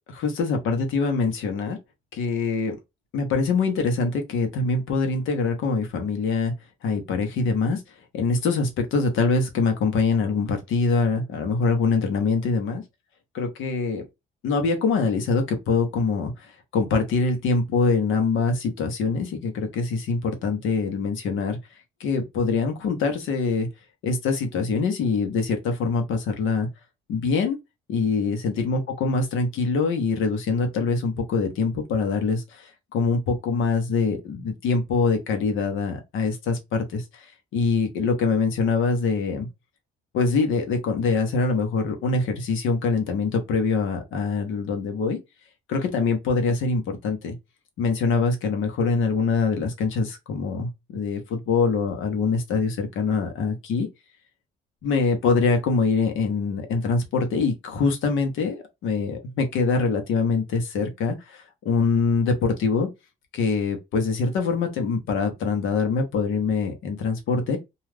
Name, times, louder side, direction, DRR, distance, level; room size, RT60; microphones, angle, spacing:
voice 1, 0.1-1.8 2.1-2.8 3.1-6.5 6.8-7.8 8.1-12.8 13.3-14.1 14.4-21.6 22.0-23.7 24.0-26.7 27.1-27.6 27.9-39.5 40.1-45.2 45.7-47.3 47.8-53.9 54.8-62.9 63.3-67.6, left 4 dB, 85° left, 0.8 m, -24 dB
2.3 x 2.3 x 3.3 m
cardioid pair, 90°, 20 cm